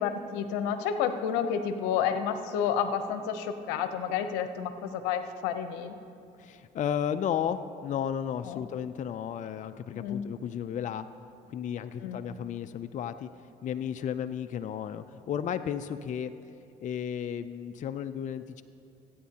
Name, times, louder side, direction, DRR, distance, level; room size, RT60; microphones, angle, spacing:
voice 1, 0.0-5.9 8.4-8.6 9.9-10.3 12.0-12.2, left 8 dB, 90° left, 9 dB, 0.8 m, -30 dB
voice 2, 6.4-11.1 11.5-13.3 13.6-16.3 16.8-18.6, left 9 dB, 45° left, 10 dB, 0.5 m, -33 dB
22.5 x 9.3 x 2.9 m, 2.7 s
supercardioid pair, 75°, 17 cm